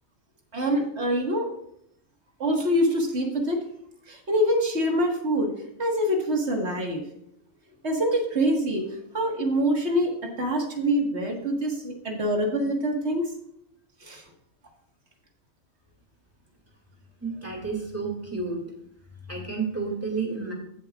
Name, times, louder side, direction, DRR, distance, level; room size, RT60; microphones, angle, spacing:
voice 1, 0.5-1.5 2.4-3.6 4.1-5.5 5.8-7.0 7.8-8.8 9.1-10.1 10.4-13.3 14.0-14.2, equal, 50° right, 1 dB, 1.9 m, -25 dB
voice 2, 17.2-18.6 19.3-20.5, right 4 dB, 10° right, 0 dB, 2.3 m, -31 dB
15.5 x 7.4 x 2.4 m, 0.74 s
omnidirectional pair, 1.4 m